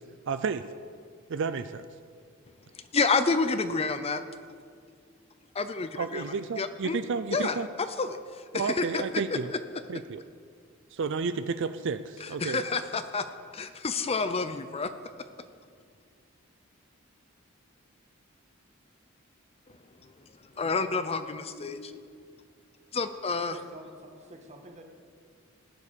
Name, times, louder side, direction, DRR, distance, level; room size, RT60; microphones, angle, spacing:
voice 1, 0.3-0.6 1.3-1.8 6.0-7.7 8.5-9.5 9.9-10.2 10.9-12.6, right 5 dB, 60° right, 10 dB, 0.5 m, -31 dB
voice 2, 2.7-4.2 5.5-6.3 6.6-7.0 7.3-9.0 9.3-9.4 12.2-13.3 13.5-14.9 20.0-20.1 20.6-22.2 22.9-23.6, left 4 dB, 30° left, 10 dB, 0.6 m, -29 dB
voice 3, 23.5-24.8, right 1 dB, 35° right, 3 dB, 1.8 m, -48 dB
15.5 x 9.9 x 6.8 m, 2.1 s
head